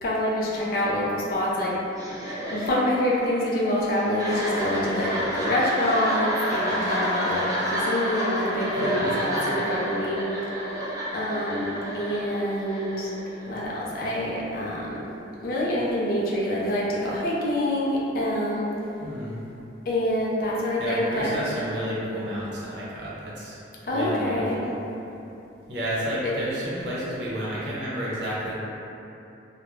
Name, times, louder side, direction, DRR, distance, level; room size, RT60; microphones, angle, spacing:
voice 1, 0.0-1.8 2.5-10.2 11.1-11.7 11.9-13.1 13.5-15.1 15.4-18.7 19.9-21.4 23.9-24.6 26.2-26.3, left 1 dB, 50° left, -5 dB, 0.4 m, -26 dB
sound 1, 1.9-13.6, equal, 20° right, 0.3 m, -30 dB
voice 2, 8.7-9.2 19.0-19.3 20.8-23.6 23.9-24.7 25.7-28.5, equal, 65° right, -7 dB, 0.6 m, -31 dB
2.4 x 2.0 x 3.0 m, 2.9 s
head